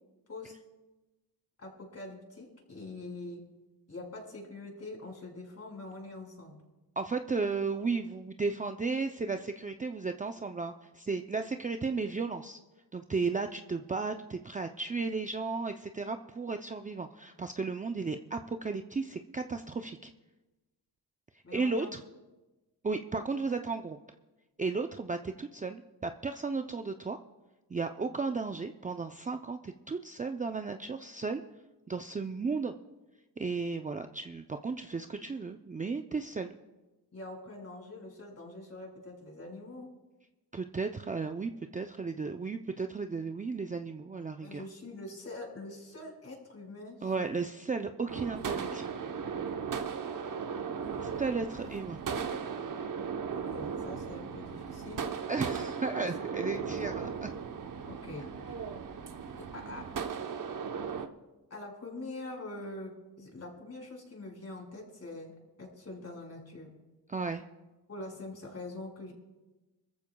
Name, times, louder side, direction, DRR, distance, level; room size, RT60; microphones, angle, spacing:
voice 1, 1.6-3.4 3.9-6.6 21.4-21.9 37.1-39.9 44.4-47.3 53.3-55.1 55.9-56.1 56.4-56.8 57.9-58.5 59.0-60.0 61.5-66.7 67.9-69.1, left 2 dB, 35° left, 0 dB, 5.1 m, -44 dB
voice 2, 7.0-12.6 12.9-20.1 21.5-22.0 22.8-24.0 24.6-27.2 27.7-31.4 31.9-32.7 33.4-36.6 40.5-44.6 47.0-48.9 51.0-52.0 55.3-57.3 67.1-67.5, right 4 dB, 20° right, 6 dB, 0.5 m, -34 dB
sound 1, 48.1-61.1, right 6 dB, 50° right, 1.0 m, -37 dB
24.0 x 14.5 x 2.3 m, 1.1 s
cardioid pair, 90°, 42 cm